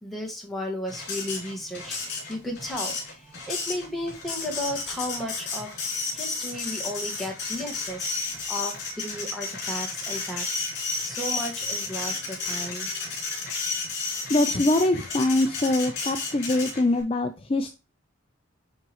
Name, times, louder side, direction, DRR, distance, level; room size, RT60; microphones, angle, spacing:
voice 1, 0.0-10.7 11.0-12.9, left 1 dB, ahead, 0 dB, 1.8 m, -34 dB
Printer, 0.9-17.0, left 4 dB, 55° left, 3.4 m, -32 dB
voice 2, 14.3-17.7, left 2 dB, 30° left, 7 dB, 0.5 m, -23 dB
9.6 x 3.8 x 3.0 m, 0.29 s
head